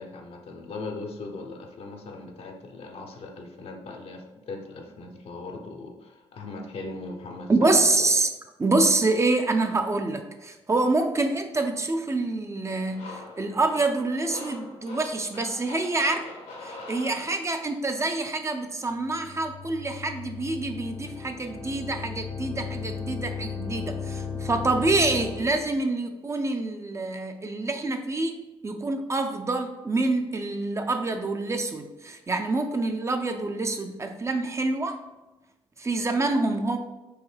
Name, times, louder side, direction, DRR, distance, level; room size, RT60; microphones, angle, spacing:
voice 1, 0.0-8.1, left 3 dB, 65° left, 3 dB, 0.7 m, -39 dB
voice 2, 7.5-8.3 8.6-16.3 16.6-28.4 28.6-35.0 35.8-36.8, right 2 dB, 25° right, 6 dB, 0.5 m, -26 dB
sound 1, 12.9-17.7, left 2 dB, 80° left, 1.1 m, -43 dB
sound 2, 19.0-25.8, left 5 dB, 30° left, 0.5 m, -36 dB
4.7 x 2.9 x 3.2 m, 1.1 s
cardioid pair, 70°, 11 cm